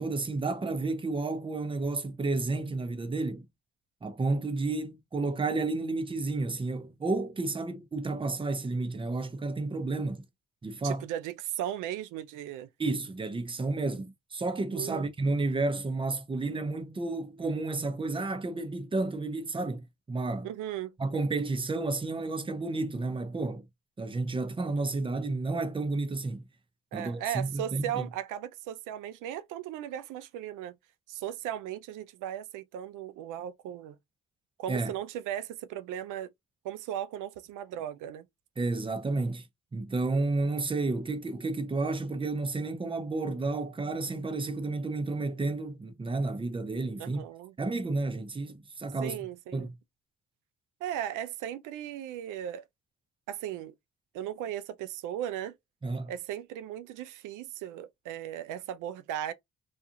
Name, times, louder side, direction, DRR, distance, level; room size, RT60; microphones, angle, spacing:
voice 1, 0.0-3.5 4.0-10.2 10.6-11.1 12.8-20.5 21.0-23.6 24.0-26.4 26.9-28.0 34.7-34.9 38.6-39.5 39.7-47.2 47.6-49.2 49.5-49.7 55.8-56.1, right 3 dB, 15° right, 0.6 m, -31 dB
voice 2, 10.8-12.7 14.7-15.1 20.4-20.9 26.9-30.8 31.1-34.0 34.6-36.3 36.6-38.3 47.0-47.5 49.0-49.7 50.8-52.6 53.3-53.7 54.1-55.6 56.1-59.3, right 11 dB, 90° right, 0.5 m, -37 dB
2.5 x 2.3 x 2.7 m
cardioid pair, 90°, 30 cm